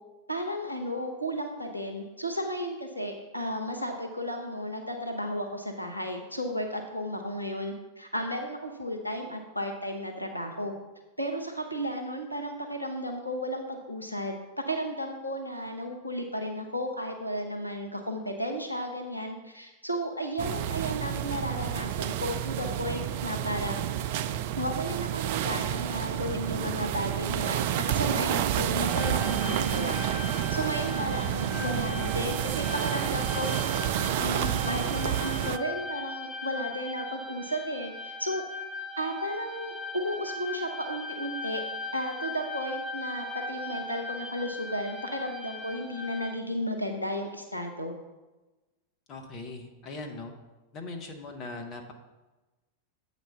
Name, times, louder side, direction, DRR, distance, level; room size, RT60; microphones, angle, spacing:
voice 1, 0.3-10.7 11.2-23.9 24.6-29.9 30.5-33.5 34.2-38.4 39.0-41.6 41.9-47.9, equal, 90° left, 4 dB, 0.7 m, -34 dB
sound 1, 20.4-35.6, right 11 dB, 50° right, 0.3 m, -30 dB
sound 2, 28.9-46.4, left 2 dB, ahead, 0.9 m, -39 dB
voice 2, 31.2-31.8 49.1-50.3 50.7-51.9, left 3 dB, 35° left, 4 dB, 1.1 m, -40 dB
7.9 x 4.1 x 5.6 m, 1.1 s
figure-of-eight pair, 90°, 0 cm